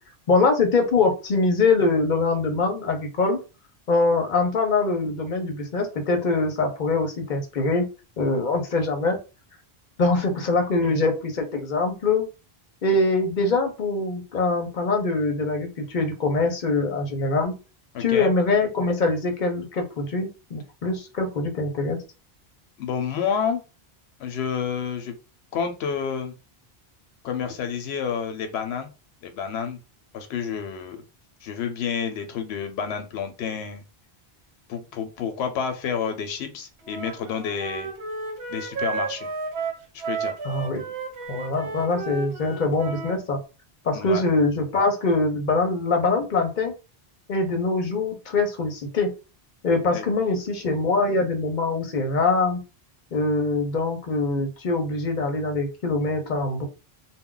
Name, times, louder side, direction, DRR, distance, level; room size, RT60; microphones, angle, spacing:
voice 1, 0.3-3.4 3.9-7.9 8.2-9.2 10.0-12.3 12.8-17.5 18.0-22.0 40.4-40.9 41.3-43.4 43.8-46.7 47.3-49.1 49.6-52.6 53.1-56.7, left 3 dB, 55° left, 4 dB, 0.7 m, -23 dB
voice 2, 17.9-18.3 22.8-23.6 24.2-25.1 25.5-26.3 27.2-28.9 29.2-29.8 30.1-31.0 31.4-33.8 34.7-37.9 38.5-39.3 39.9-40.4 43.9-44.2 49.9-50.0, left 7 dB, 90° left, 7 dB, 0.8 m, -29 dB
Wind instrument woodwind instrument, 36.8-43.2, right 4 dB, 75° right, 1.0 m, -32 dB
2.3 x 2.0 x 3.7 m, 0.31 s
omnidirectional pair, 1.1 m